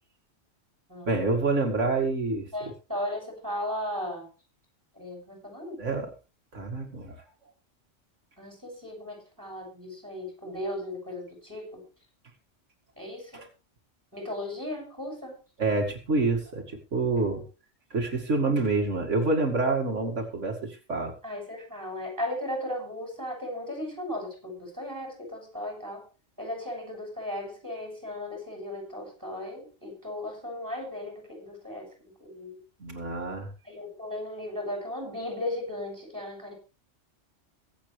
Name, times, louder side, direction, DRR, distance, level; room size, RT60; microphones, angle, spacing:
voice 1, 1.1-2.5 5.8-6.1 6.5-7.2 13.3-13.5 15.6-17.4 17.9-21.1 32.8-33.5, right 3 dB, 75° right, 1 dB, 2.6 m, -27 dB
voice 2, 2.5-4.3 5.0-5.8 8.4-11.8 13.0-13.5 14.1-15.4 17.2-17.4 21.2-26.0 26.4-32.6 33.6-36.5, left 1 dB, 15° right, 1 dB, 7.3 m, -36 dB
23.5 x 8.3 x 3.3 m, 0.32 s
omnidirectional pair, 1.3 m